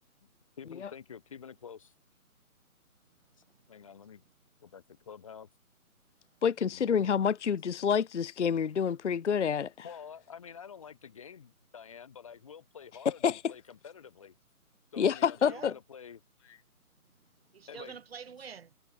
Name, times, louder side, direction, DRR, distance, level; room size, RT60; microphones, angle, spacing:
voice 1, 0.6-1.9 3.7-4.2 4.6-5.5 6.7-7.1 9.8-14.3 14.9-16.2 17.7-17.9, left 7 dB, 25° left, 1.5 m, -48 dB
voice 2, 3.1-4.3 6.3-6.8 15.4-15.8 17.0-18.7, right 6 dB, 40° right, 5.0 m, -50 dB
voice 3, 6.4-9.9 13.2-13.5 15.0-15.7, left 7 dB, 55° left, 0.5 m, -28 dB
hypercardioid pair, 165°, 44 cm